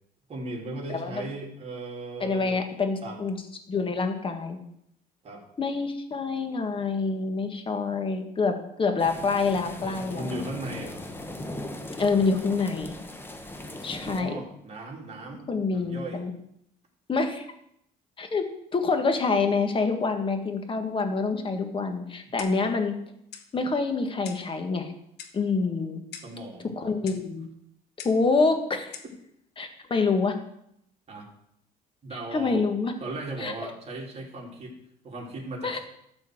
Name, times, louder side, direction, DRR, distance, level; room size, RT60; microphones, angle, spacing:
voice 1, 0.3-2.6 3.0-3.2 5.2-5.4 9.8-11.0 14.0-16.2 22.3-22.4 26.2-26.7 31.1-31.3 32.0-32.7 33.0-34.7 35.0-35.8, right 2 dB, 40° right, -1 dB, 3.0 m, -37 dB
voice 2, 0.9-1.2 2.2-3.4 3.7-4.6 5.6-10.4 12.0-12.9 13.8-14.4 15.5-16.3 17.1-17.5 18.2-18.4 18.7-22.9 23.5-24.9 25.3-26.0 26.8-27.5 28.0-28.9 29.6-30.4 32.3-32.9 33.4-33.7 35.6-35.8, left 4 dB, 30° left, 6 dB, 1.6 m, -26 dB
sound 1, 9.0-14.2, left 1 dB, 15° left, 1.1 m, -39 dB
Clock, 22.4-22.7 23.3-23.5 24.2-24.5 25.2-25.5 26.1-26.4 27.1-27.3 28.0-28.3 28.9-29.2, left 8 dB, 80° left, 1.2 m, -43 dB
13.0 x 4.4 x 7.6 m, 0.74 s
cardioid pair, 110°, 17 cm